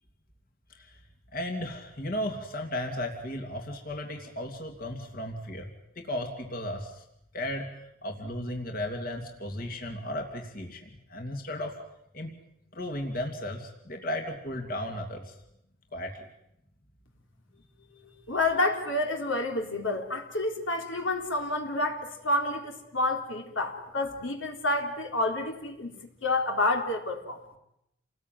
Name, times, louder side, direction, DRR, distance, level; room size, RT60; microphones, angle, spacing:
voice 1, 1.3-5.7 6.0-7.0 7.3-11.7 12.1-12.4 12.7-15.3 15.9-16.2, left 1 dB, 50° left, 3 dB, 2.8 m, -35 dB
voice 2, 18.3-25.9 26.2-27.4, left 2 dB, 75° left, 3 dB, 3.7 m, -29 dB
29.0 x 20.0 x 9.3 m, 0.82 s
head